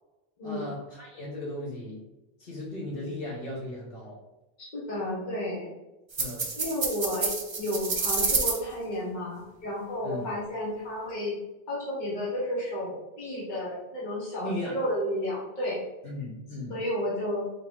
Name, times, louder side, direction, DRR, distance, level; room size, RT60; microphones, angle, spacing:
voice 1, 0.4-2.0 2.4-4.2 6.2-6.6 10.0-10.2 14.4-14.8 16.0-16.8, left 1 dB, 65° left, -4 dB, 1.5 m, -36 dB
voice 2, 4.6-5.7 6.6-7.3 7.6-11.4 11.7-15.8 16.7-17.4, left 1 dB, 50° left, -6 dB, 1.2 m, -32 dB
sound 1, 6.1-8.6, right 4 dB, 35° right, 0.5 m, -28 dB
4.1 x 3.1 x 3.5 m, 1.0 s
omnidirectional pair, 1.0 m